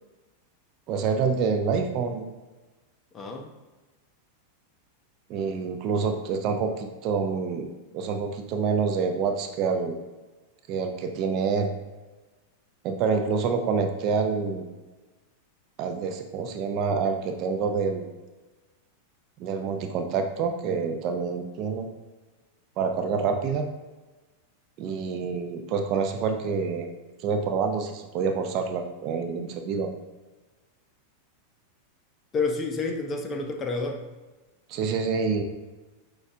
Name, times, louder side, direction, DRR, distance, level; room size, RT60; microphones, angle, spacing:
voice 1, 0.9-2.2 5.3-7.7 7.9-9.9 10.7-11.7 12.8-14.7 15.8-18.1 19.4-21.9 22.8-23.7 24.8-26.9 27.2-29.9 34.7-35.4, right 5 dB, 45° right, 5 dB, 0.5 m, -27 dB
voice 2, 3.1-3.5 32.3-34.0, left 3 dB, 30° left, 4 dB, 0.6 m, -29 dB
6.3 x 2.4 x 2.7 m, 1.2 s
hypercardioid pair, 105°, 0 cm